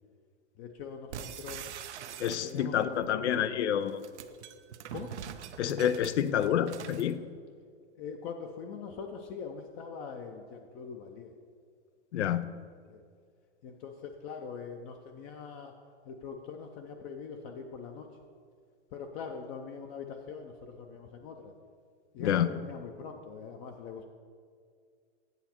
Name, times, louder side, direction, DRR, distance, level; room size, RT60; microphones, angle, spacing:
voice 1, 0.6-1.7 2.4-3.6 4.9-5.1 7.9-11.3 12.9-13.0 13.6-15.7 16.0-18.1 18.9-21.5 22.1-24.1, left 6 dB, 35° left, 4 dB, 0.5 m, -43 dB
sound 1, 1.1-2.8 3.8-7.1, right 8 dB, 90° right, 0.6 m, -43 dB
voice 2, 2.2-4.0 5.6-7.2 12.1-12.5 22.2-22.5, left 9 dB, 90° left, 14 dB, 0.6 m, -28 dB
8.1 x 6.9 x 4.4 m, 2.1 s
hypercardioid pair, 135°, 33 cm